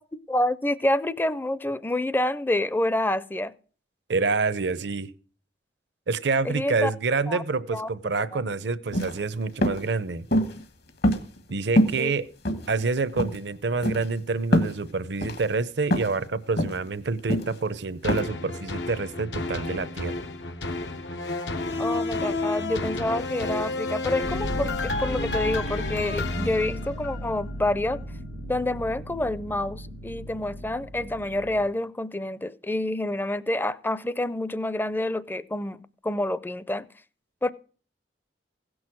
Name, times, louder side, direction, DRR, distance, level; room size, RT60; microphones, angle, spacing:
voice 1, 0.3-3.5 6.4-6.9 7.3-7.4 7.7-7.9 8.3-8.4 12.0-12.1 21.8-28.0 28.5-36.9 37.4-37.5, left 1 dB, 10° left, 0.4 m, -28 dB
voice 2, 4.1-5.1 6.1-10.3 11.5-12.3 12.7-20.2, right 4 dB, 70° right, 0.7 m, -27 dB
sound 1, 8.9-9.2 9.6-9.8 10.3-10.6 11.0-11.5 11.8-12.0 12.5-12.9 13.2-13.4 13.8-14.1 14.5-14.8 15.2-15.4 15.9-16.2 16.6-16.8 17.3-17.6 18.1-18.2, equal, 65° left, 1.4 m, -23 dB
sound 2, 18.0-27.4 27.9-28.0, left 2 dB, 90° left, 1.1 m, -31 dB
sound 3, 24.2-31.7, equal, 90° right, 1.6 m, -36 dB
16.0 x 6.2 x 6.2 m
head